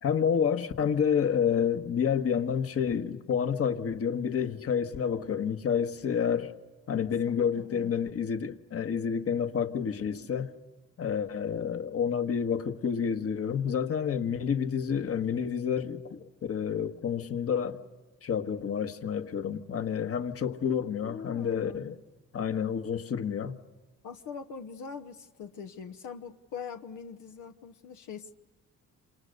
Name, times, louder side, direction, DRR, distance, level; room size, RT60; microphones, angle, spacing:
voice 1, 0.0-6.5 6.9-10.5 11.0-17.8 18.2-21.9 22.3-23.5, left 7 dB, 50° left, 1.5 m, -29 dB
voice 2, 7.3-8.1 21.0-22.0 24.0-28.3, left 6 dB, 80° left, 1.1 m, -43 dB
28.0 x 26.5 x 6.6 m
cardioid pair, 90°, 30 cm